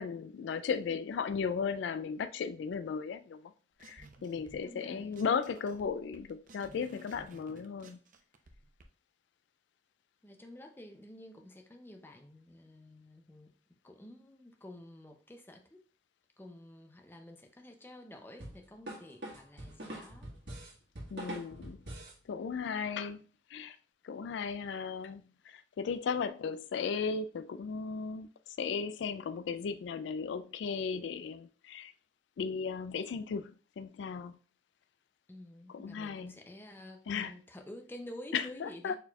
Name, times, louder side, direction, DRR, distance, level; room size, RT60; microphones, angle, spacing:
voice 1, 0.0-3.4 3.8-8.0 21.1-21.8 22.3-23.2 23.5-23.8 24.0-25.2 25.5-28.3 28.6-31.9 32.4-34.3 35.7-36.3 37.1-37.3 38.3-39.0, left 6 dB, 75° left, 0.3 m, -36 dB
sound 1, 3.8-4.8 5.1-8.8, right 3 dB, 45° right, 0.5 m, -56 dB
voice 2, 4.6-5.2 10.2-13.5 13.8-15.8 16.4-20.3 35.3-39.0, left 1 dB, 10° left, 0.4 m, -50 dB
sound 2, 18.4-22.2, right 1 dB, 70° right, 1.4 m, -44 dB
4.4 x 4.1 x 2.3 m
head